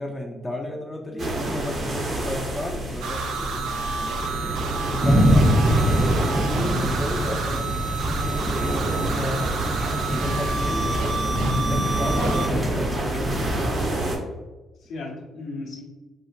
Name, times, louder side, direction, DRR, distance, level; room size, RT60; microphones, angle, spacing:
voice 1, 0.0-4.1 4.9-5.5 6.4-9.5 10.1-13.8, left 1 dB, 20° left, 1 dB, 0.4 m, -33 dB
sound 1, 1.2-14.2, right 1 dB, 50° right, 0.8 m, -29 dB
sound 2, 3.0-12.5, right 4 dB, 85° right, 0.4 m, -30 dB
voice 2, 4.8-5.4 14.8-15.8, left 2 dB, 80° left, -2 dB, 0.9 m, -36 dB
sound 3, 5.0-13.6, equal, 20° right, 0.7 m, -24 dB
4.3 x 2.4 x 2.4 m, 1.2 s
cardioid pair, 90°, 0 cm